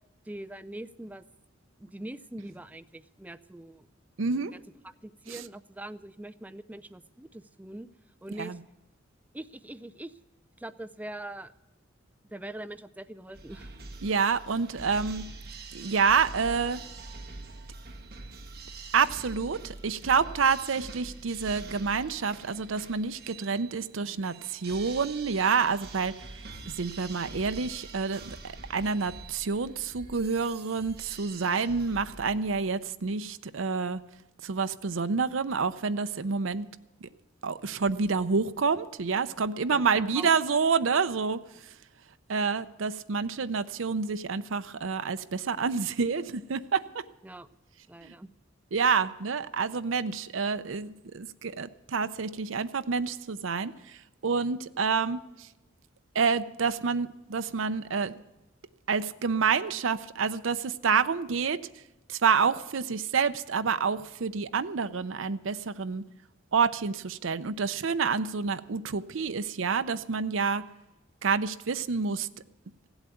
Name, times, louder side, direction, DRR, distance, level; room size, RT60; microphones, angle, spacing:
voice 1, 0.3-1.2 1.8-3.9 4.4-4.6 5.0-7.9 8.2-8.6 9.3-10.1 10.6-11.5 12.3-13.7 39.7-40.3 47.2-47.5 47.9-48.3, right 1 dB, 10° right, 12 dB, 0.4 m, -42 dB
voice 2, 4.2-4.5 5.3-5.4 8.4-8.6 14.0-15.2 15.7-16.8 18.9-34.0 34.4-36.7 37.0-37.1 37.4-41.4 42.3-47.0 48.0-48.1 48.7-54.0 54.2-55.5 56.1-58.2 58.9-61.6 62.1-66.0 66.5-70.6 71.2-72.3, right 5 dB, 70° right, 11 dB, 0.6 m, -28 dB
sound 1, 13.3-32.6, right 3 dB, 50° right, 1.7 m, -45 dB
sound 2, 26.4-27.0 27.3-27.8 28.2-28.7 29.0-29.5 29.9-30.3 30.7-31.2, equal, 30° left, 2.9 m, -49 dB
16.0 x 8.1 x 9.3 m, 0.97 s
head